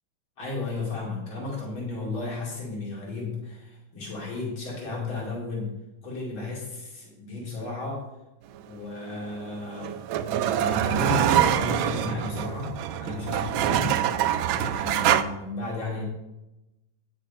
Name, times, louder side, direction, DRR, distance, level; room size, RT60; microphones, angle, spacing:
voice 1, 0.4-5.7 6.0-8.0 8.6-9.9 10.7-12.7 13.0-13.9 14.5-16.0, left 3 dB, 80° left, -4 dB, 3.5 m, -33 dB
sound 1, 9.3-15.2, right 10 dB, 80° right, 1.4 m, -25 dB
9.8 x 6.5 x 5.3 m, 0.96 s
omnidirectional pair, 2.2 m